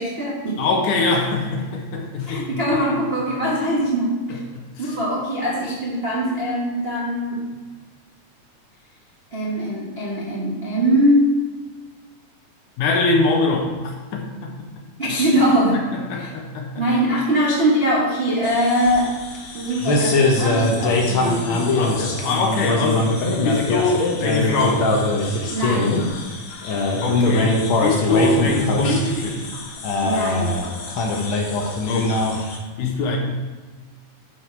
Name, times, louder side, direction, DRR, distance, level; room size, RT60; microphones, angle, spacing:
voice 1, 0.0-0.7 2.3-4.4 4.8-7.4 9.3-11.4 15.0-15.8 16.1-16.3 16.7-19.1 19.5-21.7 25.5-26.0 30.0-30.6, equal, 60° right, -6 dB, 0.6 m, -22 dB
voice 2, 0.6-2.4 12.8-14.5 16.1-16.9 21.8-23.1 23.4-24.9 27.0-29.4 31.9-32.1 32.8-33.2, left 3 dB, 75° left, 0 dB, 2.8 m, -22 dB
sound 1, 18.4-32.6, left 2 dB, 60° left, 1.4 m, -22 dB
11.5 x 5.0 x 4.7 m, 1.4 s
omnidirectional pair, 3.8 m